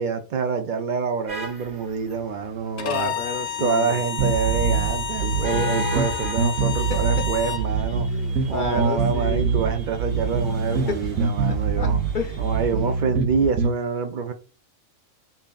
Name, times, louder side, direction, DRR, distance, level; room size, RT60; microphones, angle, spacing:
voice 1, 0.0-3.1 3.6-8.1 8.5-12.0 12.4-14.3, right 6 dB, 65° right, 0.4 m, -26 dB
sound 1, 1.3-13.0, left 1 dB, 40° right, 2.0 m, -39 dB
Bowed string instrument, 2.8-7.7, left 8 dB, 70° left, 0.9 m, -31 dB
voice 2, 2.8-4.0 6.9-7.0 8.1-9.5 11.8-11.9 12.1-12.5, left 5 dB, 55° left, 0.6 m, -31 dB
sound 2, 4.2-13.7, right 5 dB, 80° right, 1.1 m, -24 dB
5.5 x 2.6 x 2.3 m
omnidirectional pair, 1.4 m